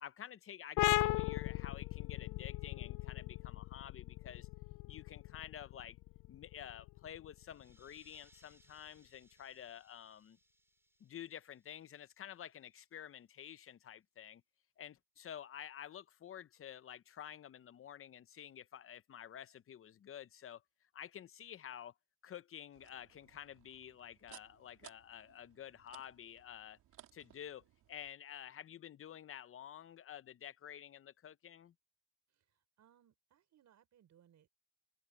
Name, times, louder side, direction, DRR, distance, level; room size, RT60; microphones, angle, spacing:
voice 1, 0.0-4.5 4.9-6.0 6.3-10.4 11.0-14.4 14.8-20.6 20.9-21.9 22.2-26.8 27.1-31.7, left 10 dB, 45° left, 0.7 m, -50 dB
sound 1, 0.8-8.1, left 19 dB, 85° left, 0.5 m, -38 dB
sound 2, 7.4-12.6, right 1 dB, 10° right, 5.0 m, -71 dB
sound 3, 22.7-28.1, right 13 dB, 85° right, 2.5 m, -62 dB
voice 2, 32.3-34.5, right 10 dB, 65° right, 5.3 m, -69 dB
cardioid pair, 90°, 30 cm